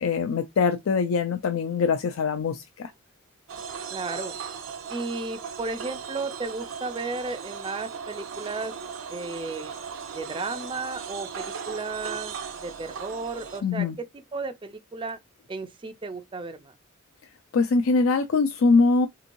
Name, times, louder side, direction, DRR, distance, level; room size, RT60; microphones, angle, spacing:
voice 1, 0.0-2.9 13.6-14.0 17.5-19.1, left 4 dB, 75° left, 0.4 m, -23 dB
sound 1, 3.5-13.6, right 6 dB, 70° right, 0.6 m, -37 dB
voice 2, 3.9-4.4 4.9-8.7 9.1-9.7 10.1-12.4 12.6-13.9 14.1-15.2 15.5-16.7, right 3 dB, 25° right, 0.3 m, -34 dB
3.6 x 2.9 x 2.5 m
head